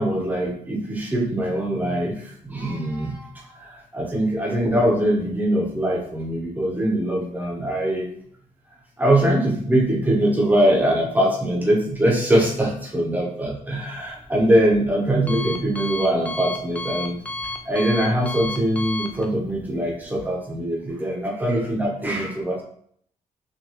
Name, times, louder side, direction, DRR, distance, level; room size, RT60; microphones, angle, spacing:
voice 1, 0.0-3.2 3.6-8.1 9.0-17.2 17.7-22.6, right 1 dB, 10° right, -2 dB, 0.9 m, -22 dB
Alarm, 13.9-20.3, left 2 dB, 10° left, 0.4 m, -34 dB
6.0 x 2.6 x 3.0 m, 0.65 s
wide cardioid pair, 170°, 14 cm